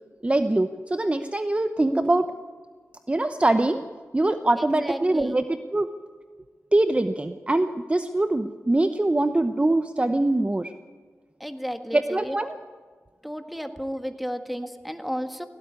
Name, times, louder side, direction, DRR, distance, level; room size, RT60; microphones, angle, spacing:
voice 1, 0.2-2.3 3.1-3.8 4.1-5.9 6.7-10.7 11.9-12.6, right 2 dB, 25° right, 9 dB, 0.8 m, -23 dB
voice 2, 4.6-5.4 11.4-12.4 13.2-15.5, equal, ahead, 7 dB, 1.7 m, -33 dB
17.5 x 16.5 x 9.6 m, 1.5 s
cardioid pair, 60°, 5 cm